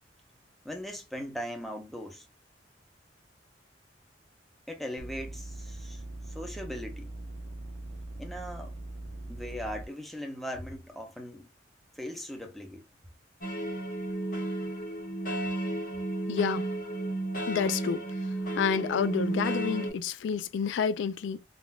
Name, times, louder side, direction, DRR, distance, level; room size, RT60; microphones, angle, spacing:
voice 1, 0.6-2.3 4.7-7.1 8.2-8.7 9.3-11.5 12.0-12.9, equal, ahead, 0.6 m, -39 dB
sound 1, 5.0-9.9, right 2 dB, 75° right, 0.7 m, -41 dB
sound 2, 13.4-19.9, right 1 dB, 50° left, 1.4 m, -33 dB
voice 2, 16.3-16.7 17.5-18.0 18.6-21.4, left 7 dB, 85° left, 0.3 m, -29 dB
3.7 x 2.4 x 2.2 m
head